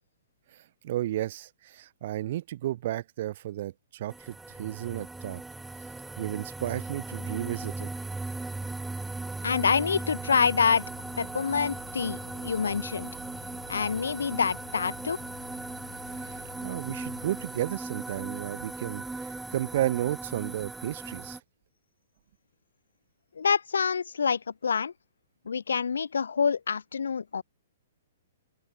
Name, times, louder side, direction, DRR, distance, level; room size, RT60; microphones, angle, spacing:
voice 1, 0.5-5.4 6.2-7.9 16.1-21.4, right 13 dB, 55° right, 0.8 m, -33 dB
sound 1, 4.1-21.4, right 3 dB, 5° right, 0.4 m, -38 dB
voice 2, 9.4-10.9 11.2-13.1 13.7-15.2 23.4-24.9 25.5-27.4, left 6 dB, 85° left, 0.6 m, -27 dB
sound 2, 9.5-17.5, left 18 dB, 45° left, 3.5 m, -49 dB
open air
hypercardioid pair, 135°, 0 cm